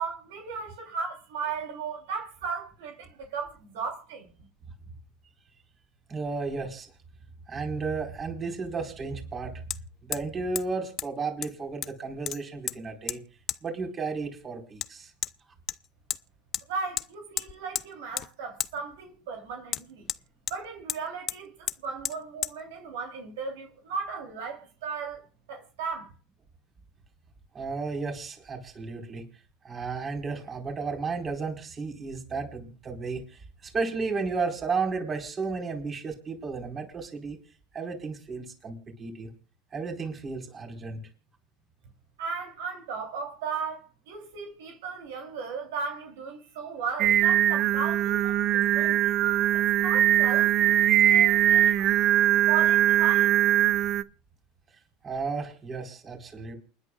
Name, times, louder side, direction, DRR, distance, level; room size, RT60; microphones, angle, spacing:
voice 1, 0.0-4.3 16.7-20.1 20.5-26.1 42.2-49.1 49.5-50.7 51.0-51.9 52.5-53.3, right 5 dB, 75° right, 3.4 m, -36 dB
voice 2, 6.1-6.9 7.5-9.5 10.0-13.2 13.6-15.1 27.5-29.2 29.6-37.4 37.7-39.3 39.7-41.0 55.0-56.5, right 4 dB, 30° right, 4.6 m, -33 dB
Hammer, 7.8-7.9 9.7-9.8 10.1-10.3 10.6-10.7 11.0-11.1 11.4-12.0 12.3-12.8 13.1-13.2 13.5-13.6 14.8-14.9 15.2-15.3 15.7-16.2 16.5-16.7 17.0-17.1 17.4-17.9 18.2-18.3 18.6-18.7 19.7-20.6 20.9-21.0 21.3-21.4 21.7-21.8 22.0-22.2 22.4-22.5, left 11 dB, 45° left, 0.6 m, -32 dB
Singing, 47.0-54.0, right 12 dB, 50° right, 0.6 m, -21 dB
29.0 x 10.5 x 2.4 m
hypercardioid pair, 95°, 0 cm